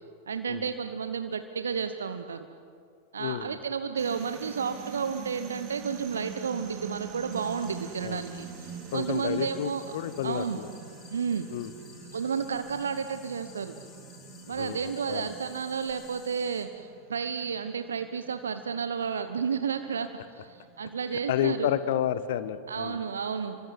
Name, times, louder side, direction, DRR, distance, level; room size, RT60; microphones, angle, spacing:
voice 1, 0.3-2.5 3.1-9.8 10.2-10.6 11.1-11.5 12.1-13.8 14.5-21.7 22.7-23.6, right 6 dB, 70° right, 9 dB, 1.1 m, -32 dB
voice 2, 3.2-3.6 8.0-8.2 8.9-10.7 11.5-11.7 14.6-15.3 21.3-23.0, left 11 dB, 55° left, 14 dB, 1.3 m, -31 dB
sound 1, 4.0-22.4, right 6 dB, 40° right, 3.7 m, -46 dB
sound 2, 7.3-16.7, left 6 dB, 35° left, 5.7 m, -54 dB
29.0 x 24.5 x 8.2 m, 2.4 s
figure-of-eight pair, 90°, 0 cm